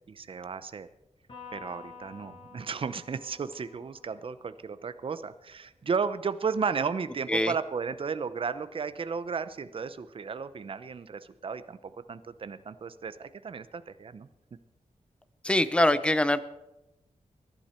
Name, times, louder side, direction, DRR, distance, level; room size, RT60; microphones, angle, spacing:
voice 1, 0.1-0.9 1.5-14.3, right 5 dB, 45° right, 12 dB, 0.7 m, -34 dB
Electric guitar, 1.3-4.8, left 5 dB, 40° left, 6.5 m, -49 dB
voice 2, 15.4-16.4, left 1 dB, 10° left, 13 dB, 0.6 m, -23 dB
21.0 x 12.0 x 4.4 m, 0.93 s
wide cardioid pair, 180°, 13 cm